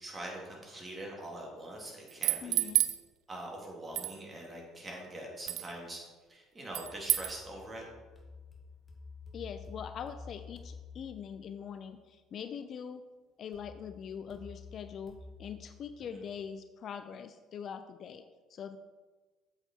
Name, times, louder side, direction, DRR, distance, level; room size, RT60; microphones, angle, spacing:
voice 1, 0.0-2.7 3.3-6.0 6.3-7.9 16.1-16.2, right 1 dB, 25° right, -1 dB, 3.0 m, -43 dB
sound 1, 2.1-3.0 3.9-4.1 5.5-5.7 6.7-7.3, right 15 dB, 60° right, 0.5 m, -29 dB
voice 2, 2.4-2.9 9.3-13.0 13.4-18.2 18.5-18.8, left 7 dB, 45° left, 9 dB, 0.4 m, -43 dB
sound 2, 6.7-11.7 13.5-16.5, left 4 dB, 25° left, 1.8 m, -51 dB
7.9 x 7.4 x 4.5 m, 1.3 s
figure-of-eight pair, 55°, 0 cm